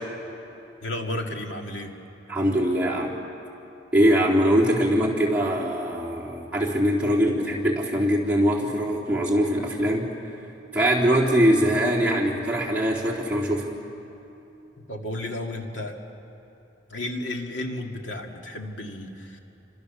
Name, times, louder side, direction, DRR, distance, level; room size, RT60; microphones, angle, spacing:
voice 1, 0.8-1.9 14.9-16.0 16.9-19.4, left 1 dB, 90° left, 2 dB, 2.4 m, -33 dB
voice 2, 2.3-3.1 3.9-10.1 10.7-13.7, equal, 5° right, -5 dB, 3.7 m, -22 dB
29.5 x 25.5 x 7.0 m, 3.0 s
head